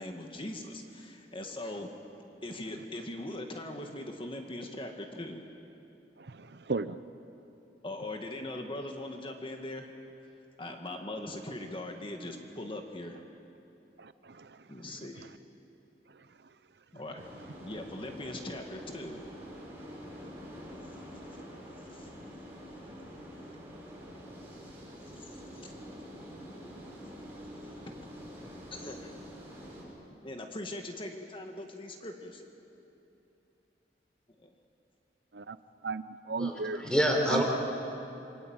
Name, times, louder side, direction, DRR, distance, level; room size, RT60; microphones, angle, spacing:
voice 1, 0.0-1.9 2.4-5.4 7.8-9.9 10.6-13.2 14.7-15.3 16.9-17.2 17.6-19.2 21.9-22.1 25.2-25.4 25.6-25.7 27.7-28.0 28.7-29.2 30.2-32.4 34.4-34.5, left 1 dB, 30° left, 3 dB, 1.9 m, -40 dB
voice 2, 6.2-7.0 14.0-14.6 35.3-35.6 35.8-36.8 37.3-37.4, right 4 dB, 65° right, 13 dB, 0.7 m, -35 dB
sound 1, 17.2-29.8, equal, 15° right, 7.2 m, -46 dB
voice 3, 36.4-37.4, equal, 5° left, 2 dB, 4.0 m, -27 dB
27.5 x 23.5 x 8.9 m, 2.8 s
head